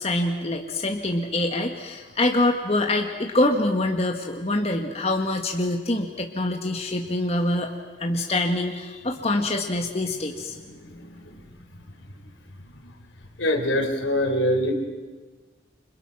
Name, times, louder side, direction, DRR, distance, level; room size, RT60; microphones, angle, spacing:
voice 1, 0.0-7.7 8.0-10.5, left 1 dB, 30° left, 3 dB, 1.6 m, -25 dB
voice 2, 13.4-14.7, equal, 85° left, 4 dB, 4.0 m, -23 dB
29.5 x 26.0 x 6.0 m, 1.3 s
head